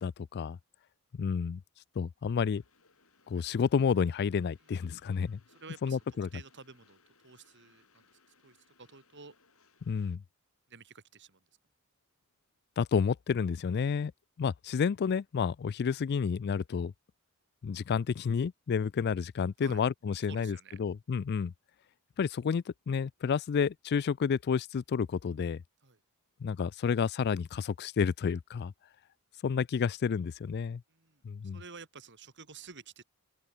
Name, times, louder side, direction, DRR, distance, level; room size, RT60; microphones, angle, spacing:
voice 1, 0.0-0.6 1.2-1.6 2.0-2.6 3.3-5.4 5.8-6.3 9.9-10.2 12.8-14.1 14.4-16.9 17.6-21.5 22.2-25.6 26.4-28.7 29.4-30.8 31.2-31.6, left 6 dB, 50° left, 0.3 m, -30 dB
Train, 2.5-10.2, left 4 dB, 65° left, 7.9 m, -67 dB
voice 2, 5.5-6.0 6.3-7.0 7.2-8.1 8.4-9.3 10.7-11.4 19.6-20.8 25.8-26.0 30.9-33.0, right 5 dB, 55° right, 3.0 m, -51 dB
open air
head